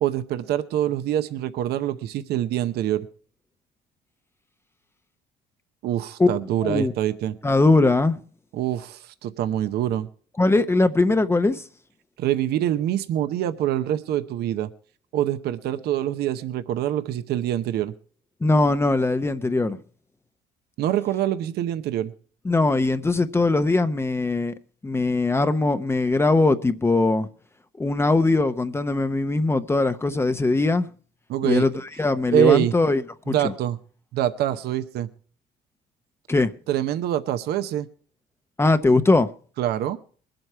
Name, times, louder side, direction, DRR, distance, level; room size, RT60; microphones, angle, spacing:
voice 1, 0.0-3.1 5.8-7.4 8.5-10.1 12.2-14.7 15.1-17.9 20.8-22.1 31.3-31.7 32.3-32.7 33.3-33.8 34.1-35.1 36.7-37.9 39.6-40.0, right 11 dB, 70° right, 0.8 m, -25 dB
voice 2, 7.4-8.2 10.4-11.6 18.4-19.8 22.4-24.5 24.8-27.3 27.8-30.9 31.4-33.3 36.3-36.5 38.6-39.3, left 2 dB, 15° left, 0.7 m, -21 dB
21.5 x 7.9 x 4.5 m
cardioid pair, 110°, 17 cm